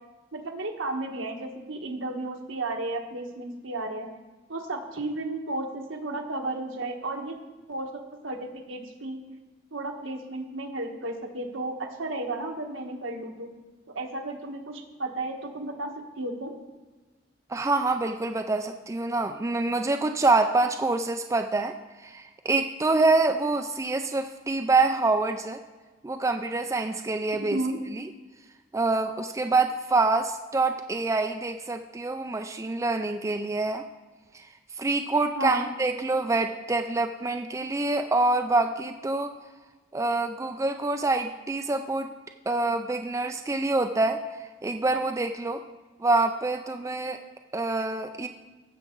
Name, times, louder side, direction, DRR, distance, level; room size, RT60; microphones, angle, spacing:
voice 1, 0.3-4.1 4.5-7.4 7.7-9.2 9.7-13.5 13.9-16.5 27.5-27.8 35.4-35.7, right 2 dB, 80° right, 2 dB, 1.4 m, -33 dB
voice 2, 17.5-21.7 22.0-25.6 26.0-27.6 27.9-28.1 28.7-33.8 34.8-39.3 39.9-42.1 42.5-44.2 44.6-45.6 46.0-47.2 47.5-48.3, right 3 dB, 15° right, 6 dB, 0.3 m, -26 dB
15.5 x 7.2 x 3.8 m, 1.3 s
head